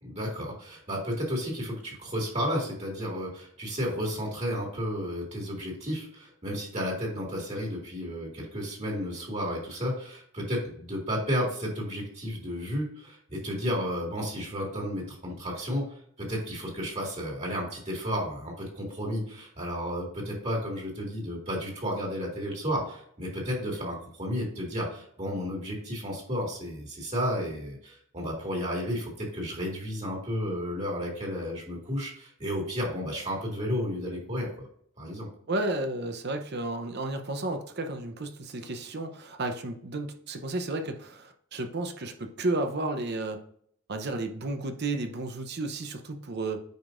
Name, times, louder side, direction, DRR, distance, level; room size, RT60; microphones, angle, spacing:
voice 1, 0.0-34.7 35.0-35.3, equal, 30° right, -2 dB, 2.1 m, -32 dB
voice 2, 35.5-43.4 43.9-46.6, right 2 dB, 50° right, 6 dB, 0.8 m, -32 dB
9.1 x 5.1 x 2.6 m, 0.65 s
head